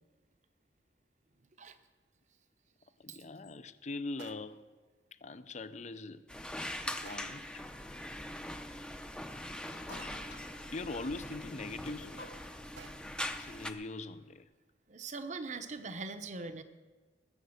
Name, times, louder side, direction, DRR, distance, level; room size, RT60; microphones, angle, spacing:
sound 1, 1.9-2.0 4.2-4.8 7.0-7.6 9.9-10.5 12.8-13.3, right 5 dB, 85° right, 0.8 m, -54 dB
voice 1, 3.0-4.6 5.2-6.2 6.9-7.6 10.7-12.2 13.4-14.5, left 3 dB, 40° left, 0.6 m, -42 dB
sound 2, 6.3-13.7, left 1 dB, 5° left, 0.7 m, -42 dB
sound 3, 9.2-14.4, left 3 dB, 65° left, 1.2 m, -55 dB
voice 2, 14.9-16.6, right 3 dB, 40° right, 0.9 m, -41 dB
20.5 x 7.9 x 6.5 m
head